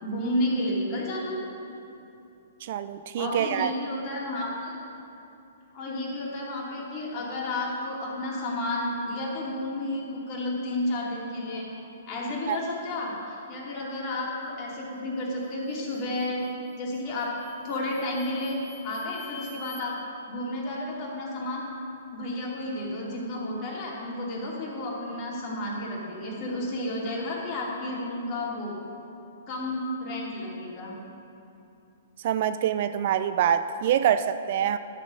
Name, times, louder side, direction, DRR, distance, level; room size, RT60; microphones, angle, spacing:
voice 1, 0.0-1.4 3.2-4.7 5.7-11.7 12.1-16.5 16.8-17.4 17.6-18.6 18.8-20.0 20.3-21.6 22.1-28.8 29.5-30.9, left 1 dB, 35° left, -4 dB, 2.9 m, -31 dB
voice 2, 2.6-3.7 12.5-12.6 32.2-34.8, right 9 dB, 50° right, 12 dB, 0.4 m, -25 dB
sound 1, 15.4-15.7 16.1-16.7 17.2-19.8, left 3 dB, 5° left, 2.7 m, -47 dB
12.5 x 7.5 x 5.2 m, 2.9 s
figure-of-eight pair, 120°, 0 cm